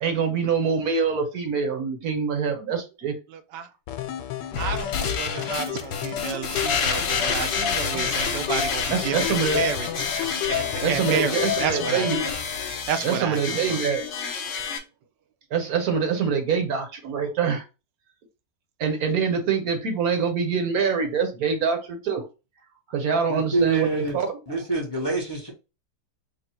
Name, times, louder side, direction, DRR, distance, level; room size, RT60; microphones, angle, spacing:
voice 1, 0.0-3.1 6.5-6.6 8.9-9.6 10.2-10.4 10.8-12.4 13.0-14.1 14.3-14.5 15.5-17.6 18.8-22.3 22.9-24.0, right 6 dB, 60° right, 1.3 m, -25 dB
sound 1, 3.9-12.3, left 10 dB, 85° left, 1.3 m, -31 dB
sound 2, 4.5-14.8, left 6 dB, 65° left, 1.2 m, -29 dB
voice 2, 4.6-9.2 9.5-9.9 10.5-12.3 12.9-13.8, right 9 dB, 90° right, 1.3 m, -30 dB
voice 3, 23.3-24.2 24.5-25.5, right 2 dB, 20° left, 0.8 m, -26 dB
3.8 x 2.3 x 4.3 m
omnidirectional pair, 1.9 m